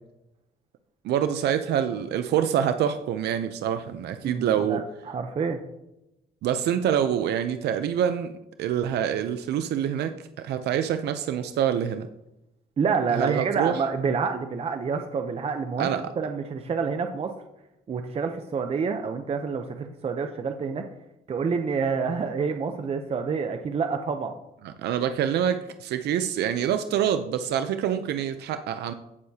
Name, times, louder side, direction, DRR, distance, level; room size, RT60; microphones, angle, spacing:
voice 1, 1.0-4.8 6.4-8.3 8.6-12.1 13.1-13.8 15.8-16.0 24.6-28.9, right 9 dB, 80° right, 9 dB, 0.6 m, -26 dB
voice 2, 4.2-5.6 12.8-17.3 17.9-20.9 21.3-24.4, right 5 dB, 35° right, 6 dB, 0.7 m, -28 dB
15.5 x 6.6 x 2.8 m, 0.89 s
cardioid pair, 115°, 17 cm